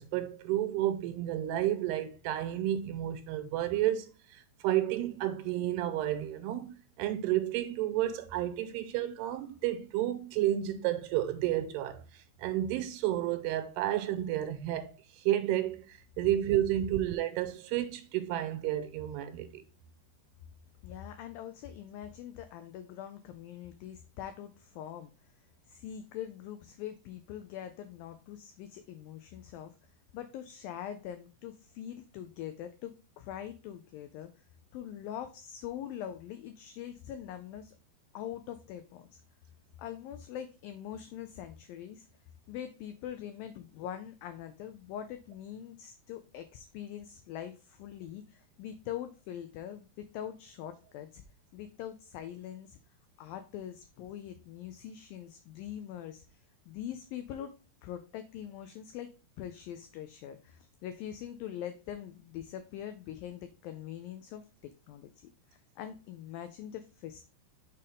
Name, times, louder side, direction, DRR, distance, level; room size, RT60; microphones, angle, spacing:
voice 1, 0.0-19.6, right 13 dB, 85° right, 2.7 m, -31 dB
voice 2, 20.8-25.1 25.7-29.7 30.1-34.4 34.7-37.8 38.1-39.2 39.8-42.1 42.5-51.2 51.5-52.8 53.2-56.4 56.7-57.6 57.8-65.1 65.5-67.3, left 10 dB, 90° left, 2.0 m, -43 dB
6.3 x 4.5 x 3.5 m
omnidirectional pair, 4.7 m